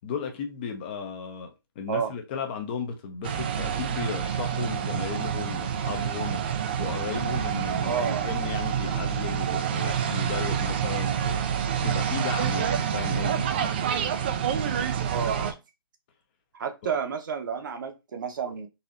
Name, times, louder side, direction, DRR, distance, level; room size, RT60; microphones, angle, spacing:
voice 1, 0.0-1.5 1.8-6.4 6.8-11.5 11.8-13.5 16.8-16.9, left 5 dB, 25° left, 0.6 m, -34 dB
sound 1, 3.2-15.5, right 8 dB, 25° right, 0.3 m, -28 dB
voice 2, 7.8-8.3 15.1-15.6 16.6-18.7, right 6 dB, 55° right, 0.9 m, -30 dB
4.1 x 2.6 x 2.5 m
hypercardioid pair, 155°, 13 cm